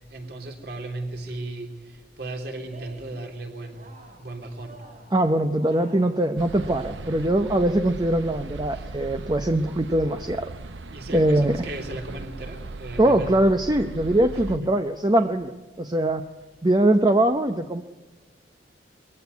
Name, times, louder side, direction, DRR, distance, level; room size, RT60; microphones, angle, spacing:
voice 1, 0.1-3.8 4.2-4.8 8.7-9.0 10.9-13.4 14.3-14.7, right 2 dB, 60° right, 3 dB, 3.3 m, -36 dB
Cheering, 2.6-3.2 3.6-4.3 4.6-5.2 5.6-7.3, right 2 dB, 45° right, 5.5 m, -49 dB
voice 2, 5.1-10.5 11.1-11.7 13.0-16.2 16.6-17.8, right 1 dB, 25° right, 7 dB, 0.7 m, -22 dB
sound 1, 6.4-14.6, right 3 dB, 85° right, 0.7 m, -38 dB
22.0 x 15.5 x 9.6 m, 1.2 s
head